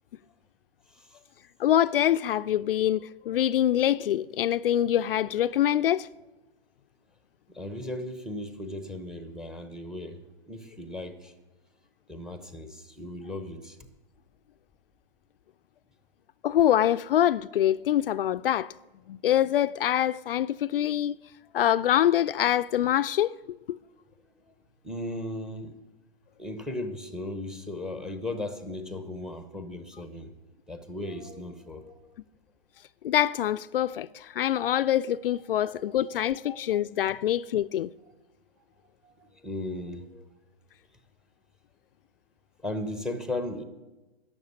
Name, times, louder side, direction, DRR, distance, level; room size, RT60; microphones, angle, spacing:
voice 1, 0.9-1.2 7.5-10.2 10.5-11.3 12.1-13.9 24.8-25.8 26.4-30.3 30.7-32.2 35.5-36.7 37.0-37.2 38.6-38.7 39.0-40.4 42.6-43.6, left 1 dB, ahead, 0.8 m, -37 dB
voice 2, 1.6-6.1 16.4-18.7 19.1-21.1 21.5-23.3 23.7-23.8 33.0-37.9, left 11 dB, 65° left, 0.4 m, -25 dB
12.5 x 7.2 x 9.6 m
hypercardioid pair, 140°, 31 cm